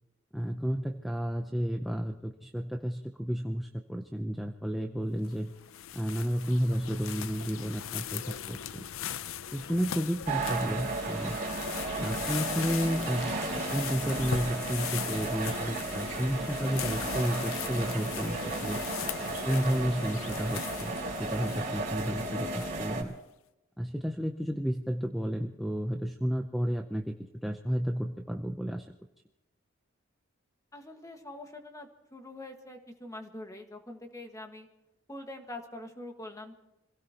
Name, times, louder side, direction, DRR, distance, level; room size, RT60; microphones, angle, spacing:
voice 1, 0.3-5.5 5.9-8.2 8.5-8.9 9.5-11.4 12.0-18.8 19.4-23.1 23.8-28.9, equal, ahead, 3 dB, 0.6 m, -32 dB
sound 1, 5.2-23.0, left 9 dB, 75° left, 0.5 m, -39 dB
sound 2, 10.3-23.0, right 3 dB, 40° right, 3.8 m, -34 dB
voice 2, 30.7-34.7 35.1-36.6, left 1 dB, 15° left, 4 dB, 1.6 m, -44 dB
26.5 x 17.0 x 3.0 m, 0.91 s
head